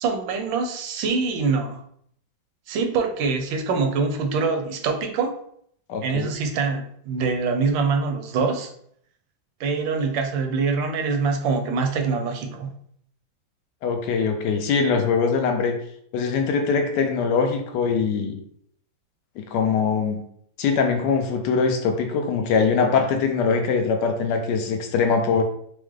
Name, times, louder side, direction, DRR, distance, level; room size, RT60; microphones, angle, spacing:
voice 1, 0.0-1.8 2.7-5.4 6.0-8.7 9.6-12.7, right 4 dB, 80° right, 5 dB, 1.3 m, -24 dB
voice 2, 5.9-6.3 13.8-15.7 16.1-18.4 19.4-20.2 20.6-25.4, left 5 dB, 70° left, 4 dB, 1.1 m, -22 dB
4.7 x 2.1 x 3.1 m, 0.67 s
omnidirectional pair, 2.1 m